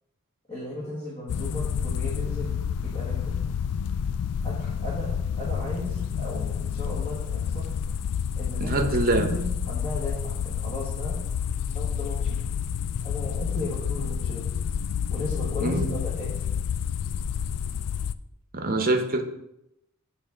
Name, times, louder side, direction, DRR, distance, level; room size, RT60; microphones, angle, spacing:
voice 1, 0.5-3.4 4.4-7.7 8.3-11.2 11.7-12.4 13.0-14.5 15.1-16.5, left 1 dB, 30° left, -6 dB, 1.6 m, -36 dB
sound 1, 1.3-18.1, left 7 dB, 85° left, 0.3 m, -29 dB
voice 2, 8.6-9.3 15.6-15.9 18.5-19.2, right 2 dB, 40° right, 4 dB, 0.9 m, -24 dB
8.8 x 3.6 x 5.1 m, 0.83 s
head